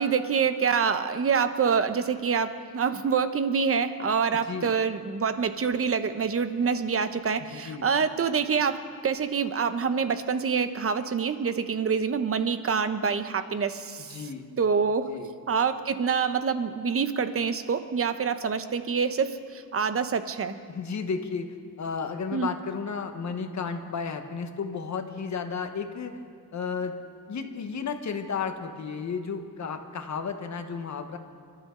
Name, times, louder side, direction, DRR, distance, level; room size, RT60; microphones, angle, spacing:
voice 1, 0.0-14.2 14.6-15.1 15.5-20.6 22.3-22.5, right 6 dB, 40° right, 10 dB, 0.8 m, -26 dB
voice 2, 7.5-7.9 14.1-14.5 15.1-15.3 20.7-26.2 26.5-27.0 27.3-31.2, left 5 dB, 50° left, 6 dB, 1.2 m, -33 dB
28.5 x 13.0 x 3.8 m, 2.1 s
wide cardioid pair, 155°, 36 cm